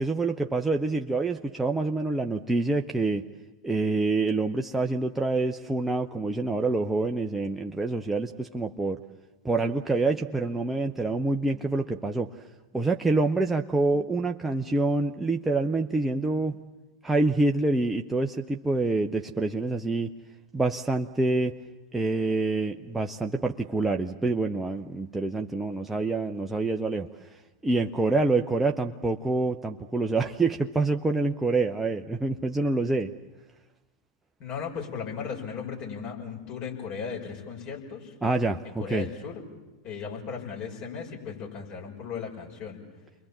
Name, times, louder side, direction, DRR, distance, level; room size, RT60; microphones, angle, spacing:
voice 1, 0.0-3.3 3.6-9.0 9.4-12.4 12.7-16.6 17.0-20.1 20.5-21.6 21.9-27.3 27.6-33.1 38.2-39.1, right 3 dB, 5° right, 2 dB, 0.8 m, -26 dB
voice 2, 34.4-38.1 38.6-39.4 39.8-42.8, left 6 dB, 40° left, -1 dB, 6.1 m, -36 dB
29.5 x 22.5 x 7.4 m, 1.1 s
figure-of-eight pair, 95°, 3 cm